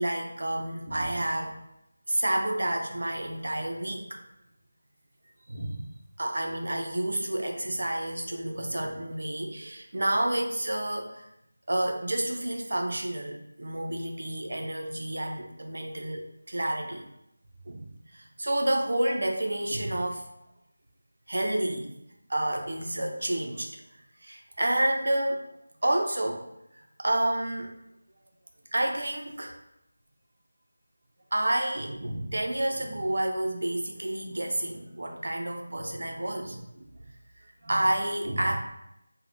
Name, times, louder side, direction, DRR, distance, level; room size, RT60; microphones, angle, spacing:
voice 1, 0.0-1.5 2.1-4.2 5.5-5.8 6.2-11.2 11.7-17.0 17.7-17.9 18.1-20.2 21.3-21.9 22.3-23.7 24.2-25.4 25.8-26.5 26.8-27.7 28.7-29.6 31.3-36.9 37.6-38.6, right 1 dB, 65° right, 3 dB, 0.4 m, -29 dB
3.2 x 2.0 x 2.5 m, 0.83 s
figure-of-eight pair, 175°, 0 cm